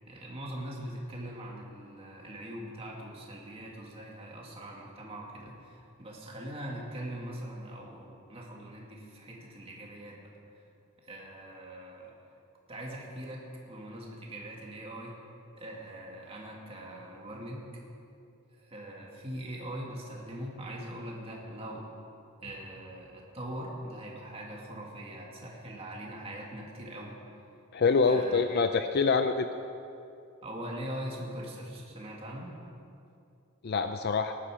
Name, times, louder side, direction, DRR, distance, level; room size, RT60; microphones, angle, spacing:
voice 1, 0.1-10.6 11.0-12.1 12.7-15.2 15.6-17.6 18.6-21.9 22.4-27.2 28.1-28.5 30.4-32.5, right 1 dB, 25° right, -2 dB, 2.2 m, -42 dB
voice 2, 27.7-29.5 33.6-34.3, left 4 dB, 45° left, 8 dB, 0.4 m, -25 dB
18.5 x 11.5 x 5.0 m, 2.6 s
head